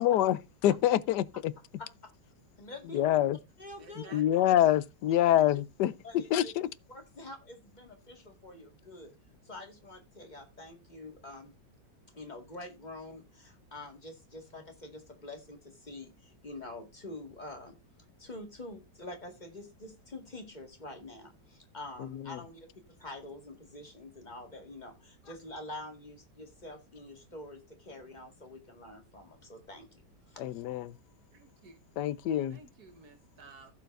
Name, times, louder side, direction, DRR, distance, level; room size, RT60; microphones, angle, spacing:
voice 1, 0.0-1.5 2.9-3.4 4.1-5.9 6.3-6.7 22.3-22.4 30.4-30.9 32.0-32.6, left 12 dB, 75° left, 1.2 m, -26 dB
voice 2, 1.8-2.1 2.6-3.2 3.6-4.2 6.0-6.5 6.9-9.1 9.4-11.5 12.1-17.8 18.2-29.9 30.3-30.4, left 2 dB, 25° left, 2.0 m, -46 dB
voice 3, 3.8-4.9 31.3-31.8 32.5-33.7, right 4 dB, 60° right, 1.8 m, -54 dB
15.5 x 5.8 x 2.5 m
omnidirectional pair, 1.9 m